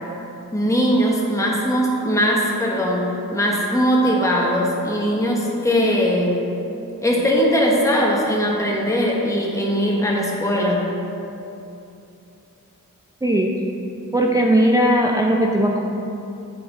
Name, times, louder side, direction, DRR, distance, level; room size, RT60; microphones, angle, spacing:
voice 1, 0.5-6.5 7.0-10.9, equal, 10° left, -3 dB, 1.0 m, -20 dB
voice 2, 13.2-13.5 14.1-15.8, right 1 dB, 10° right, 0 dB, 0.4 m, -18 dB
7.7 x 4.0 x 5.0 m, 2.8 s
wide cardioid pair, 65°, 34 cm